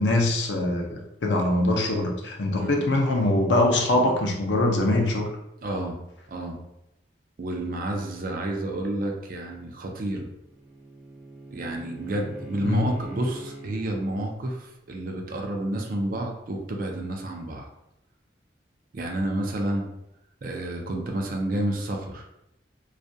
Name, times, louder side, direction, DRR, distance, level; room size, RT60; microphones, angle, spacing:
voice 1, 0.0-5.3 12.6-12.9, left 1 dB, 75° left, 1 dB, 0.5 m, -23 dB
voice 2, 5.6-6.0 6.3-6.6 7.4-10.3 11.5-17.7 18.9-19.9 20.4-22.3, right 1 dB, 50° right, 2 dB, 0.4 m, -30 dB
Bowed string instrument, 9.8-13.8, right 2 dB, 5° right, 0.6 m, -42 dB
2.3 x 2.2 x 2.6 m, 0.85 s
head